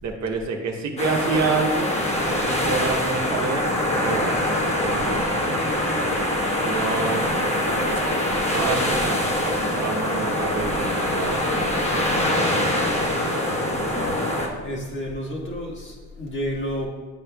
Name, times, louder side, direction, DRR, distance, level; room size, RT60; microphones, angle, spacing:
voice 1, 0.0-1.9 2.2-3.7 4.0-4.5 4.8-5.9 6.6-7.5 8.5-12.3, right 4 dB, 65° right, 2 dB, 0.9 m, -28 dB
sound 1, 1.0-14.5, left 1 dB, 20° left, 1.1 m, -24 dB
voice 2, 13.9-14.2 14.6-16.9, equal, 40° left, -2 dB, 1.5 m, -30 dB
8.2 x 5.3 x 2.3 m, 1.4 s
cardioid pair, 90°, 30 cm